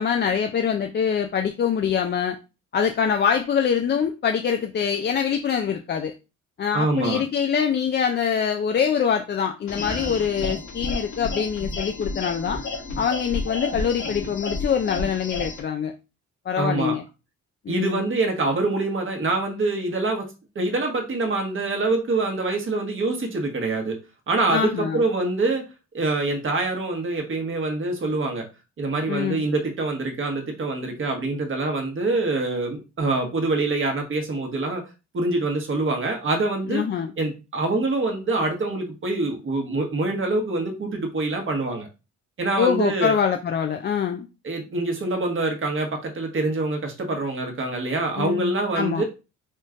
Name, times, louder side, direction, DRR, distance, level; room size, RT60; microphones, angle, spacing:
voice 1, 0.0-2.4 2.7-6.1 6.6-12.6 13.0-15.9 16.5-17.0 17.7-18.0 24.5-25.0 29.1-29.4 36.7-37.1 42.6-44.3 48.2-49.0, left 7 dB, 35° left, 5 dB, 0.4 m, -24 dB
voice 2, 6.7-7.2 16.6-16.9 17.7-20.2 20.5-24.0 24.3-25.7 25.9-28.5 28.8-34.8 35.1-36.8 37.2-41.9 42.4-43.1 44.4-49.0, right 2 dB, 40° right, 3 dB, 1.3 m, -25 dB
sound 1, 9.7-15.6, left 3 dB, 70° left, 1.4 m, -31 dB
4.3 x 3.1 x 2.5 m, 0.29 s
cardioid pair, 90°, 30 cm